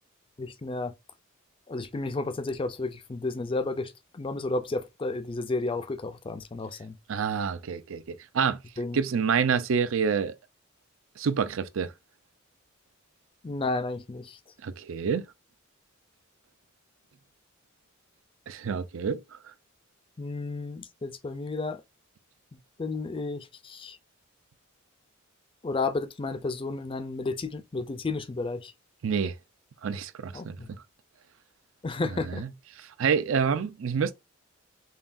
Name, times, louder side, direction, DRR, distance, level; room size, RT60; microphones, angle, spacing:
voice 1, 0.4-0.9 1.7-7.0 8.8-9.0 13.4-14.4 20.2-21.8 22.8-24.0 25.6-28.7 30.3-30.7 31.8-32.4, left 3 dB, 25° left, 0.4 m, -32 dB
voice 2, 7.1-8.6 8.9-10.3 11.2-11.9 14.6-15.2 18.5-19.2 29.0-29.3 29.8-30.8 32.3-32.5 33.0-34.1, right 6 dB, 65° right, 0.4 m, -27 dB
5.5 x 2.3 x 2.5 m
head